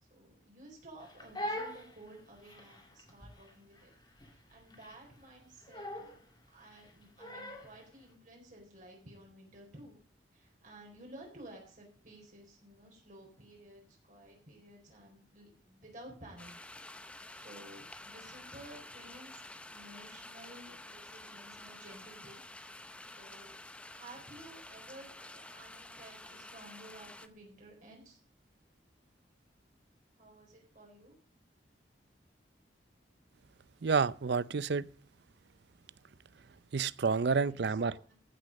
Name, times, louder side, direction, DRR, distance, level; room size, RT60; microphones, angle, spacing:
voice 1, 0.1-3.9 4.2-6.2 6.5-10.0 10.3-16.5 17.3-22.4 23.0-23.6 23.9-28.2 30.2-31.1 37.3-38.1, right 1 dB, 45° right, 4.2 m, -54 dB
Crying sobbing, 1.0-7.8, equal, 25° left, 2.3 m, -43 dB
sound 1, 16.4-27.3, left 2 dB, 5° left, 0.6 m, -50 dB
voice 2, 33.8-34.9 36.7-37.9, right 5 dB, 65° right, 0.5 m, -29 dB
15.0 x 6.5 x 6.4 m
head